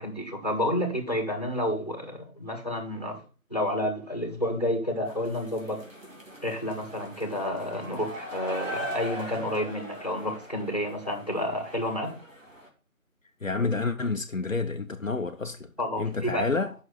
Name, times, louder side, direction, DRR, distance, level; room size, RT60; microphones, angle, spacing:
voice 1, 0.0-3.2 3.5-5.8 6.4-12.1 15.8-16.5, left 1 dB, 30° left, 1.7 m, -30 dB
sound 1, 5.1-12.7, right 1 dB, 65° right, 2.6 m, -40 dB
voice 2, 13.4-15.7 16.0-16.7, left 3 dB, 65° left, 0.8 m, -29 dB
8.8 x 6.3 x 4.1 m
figure-of-eight pair, 180°, 42 cm